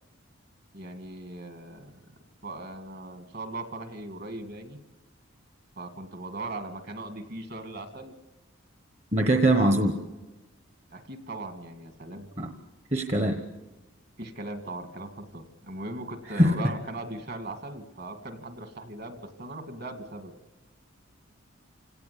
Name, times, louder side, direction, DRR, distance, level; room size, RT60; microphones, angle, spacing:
voice 1, 0.7-2.1 2.4-4.8 5.8-8.1 9.2-9.4 9.7-10.1 10.9-12.3 14.2-20.3, right 2 dB, 50° right, 8 dB, 2.1 m, -39 dB
voice 2, 9.1-10.0 12.4-12.5 12.9-13.4 16.4-16.5, right 1 dB, 30° right, 5 dB, 1.1 m, -22 dB
28.0 x 17.5 x 8.4 m, 1.2 s
head